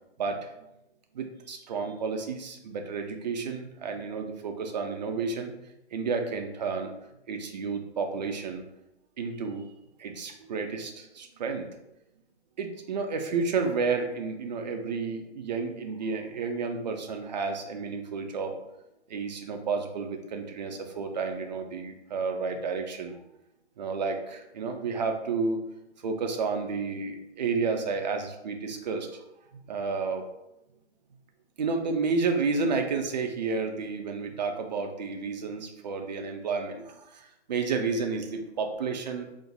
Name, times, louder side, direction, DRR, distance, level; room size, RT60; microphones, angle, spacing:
voice 1, 1.1-5.5 5.9-6.9 7.3-8.6 9.2-9.7 10.0-11.7 12.6-18.5 19.1-23.2 23.8-25.6 26.0-29.1 29.5-30.2 31.6-39.3, right 4 dB, 40° right, 4 dB, 0.4 m, -31 dB
4.1 x 2.5 x 2.3 m, 0.88 s
figure-of-eight pair, 130°, 35 cm